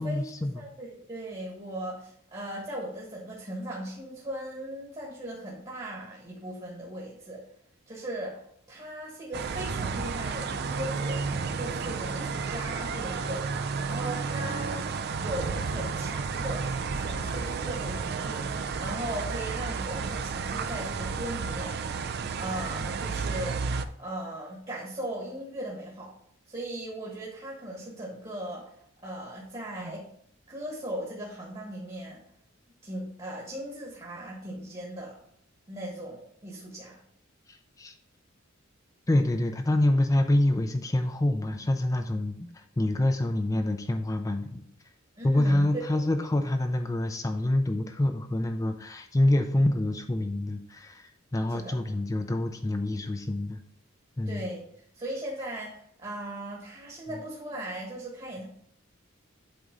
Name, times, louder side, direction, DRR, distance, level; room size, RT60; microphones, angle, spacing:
voice 1, 0.0-0.7 37.5-38.0 39.1-44.6 45.2-53.6 54.2-54.5, left 1 dB, 15° left, 6 dB, 0.4 m, -26 dB
voice 2, 0.6-7.4 7.9-8.4 8.7-14.9 15.1-21.8 22.3-23.7 24.0-26.1 26.5-28.7 29.0-30.1 30.5-32.2 32.8-35.2 35.7-37.0 45.2-45.7 51.5-51.8 54.3-54.6 54.9-58.5, right 1 dB, 30° right, -3 dB, 1.3 m, -38 dB
sound 1, 9.3-23.8, right 5 dB, 50° right, 0.4 m, -32 dB
7.9 x 4.0 x 3.7 m, 0.66 s
head